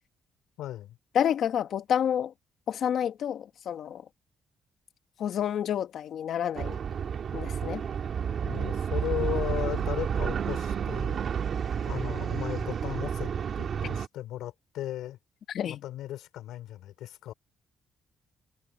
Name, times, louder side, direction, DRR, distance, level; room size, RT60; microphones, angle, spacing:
voice 1, 0.6-1.0 8.4-11.2 11.8-13.3 13.6-15.2 15.7-17.3, left 13 dB, 85° left, 4.1 m, -36 dB
voice 2, 1.1-2.3 2.7-4.0 5.2-6.8 7.3-7.8 15.5-15.8, left 9 dB, 70° left, 1.7 m, -29 dB
sound 1, 6.6-14.1, right 7 dB, 55° right, 2.7 m, -30 dB
cardioid pair, 90°, 0 cm